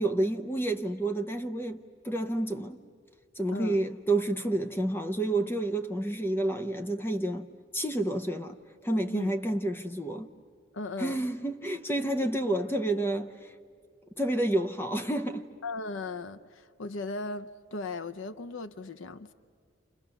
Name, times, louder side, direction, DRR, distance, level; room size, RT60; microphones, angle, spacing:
voice 1, 0.0-2.8 3.3-7.5 7.7-8.6 8.8-10.3 11.0-13.5 14.2-15.4, right 1 dB, 10° left, 0.7 m, -29 dB
voice 2, 10.7-11.2 15.6-19.3, left 3 dB, 75° left, 0.6 m, -37 dB
29.0 x 28.0 x 7.0 m
head